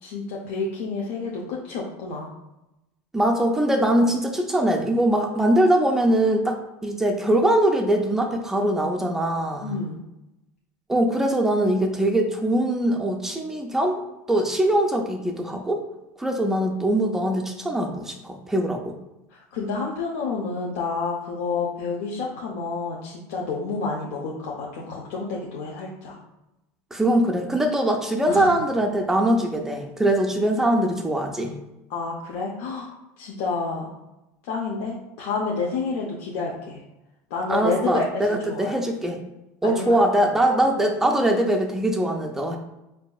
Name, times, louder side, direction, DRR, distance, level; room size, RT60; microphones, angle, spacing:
voice 1, 0.0-2.3 9.6-10.0 19.3-26.2 28.3-28.5 31.9-32.9 33.2-33.9 34.4-36.8 37.3-38.8 39.6-40.0 40.5-40.7, left 4 dB, 80° left, -3 dB, 0.7 m, -29 dB
voice 2, 3.1-9.7 10.9-14.0 14.3-15.8 16.2-18.9 26.9-31.5 37.5-39.2 39.6-42.6, right 1 dB, 5° right, 2 dB, 0.4 m, -22 dB
5.2 x 2.6 x 2.3 m, 0.95 s
cardioid pair, 160°, 7 cm